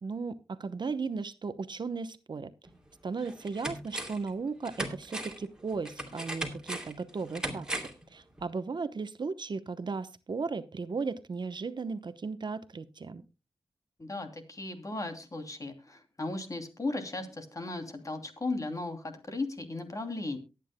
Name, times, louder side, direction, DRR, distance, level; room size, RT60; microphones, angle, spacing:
voice 1, 0.0-2.5 3.0-7.7 8.1-13.2, right 4 dB, 55° right, 12 dB, 0.9 m, -36 dB
sound 1, 2.7-2.8 3.2-4.3 4.6-8.1 8.4-8.5, right 1 dB, 10° right, 2.7 m, -38 dB
voice 2, 14.0-20.4, left 2 dB, 35° left, 6 dB, 2.9 m, -36 dB
23.0 x 9.2 x 2.2 m, 0.28 s
wide cardioid pair, 80°, 9 cm